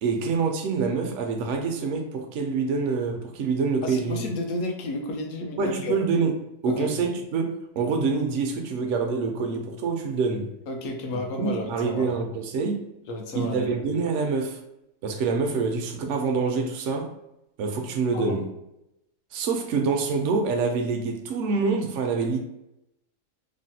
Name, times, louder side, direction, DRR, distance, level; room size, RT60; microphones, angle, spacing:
voice 1, 0.0-4.2 5.6-6.4 6.6-10.5 11.4-12.9 13.3-14.6 15.0-17.1 17.6-18.5 19.3-22.4, right 4 dB, 70° right, 0.9 m, -26 dB
voice 2, 3.8-6.0 6.7-7.1 10.7-12.2 13.1-13.9 18.1-18.5, left 2 dB, 80° left, 1.0 m, -32 dB
3.2 x 2.1 x 2.7 m
omnidirectional pair, 1.4 m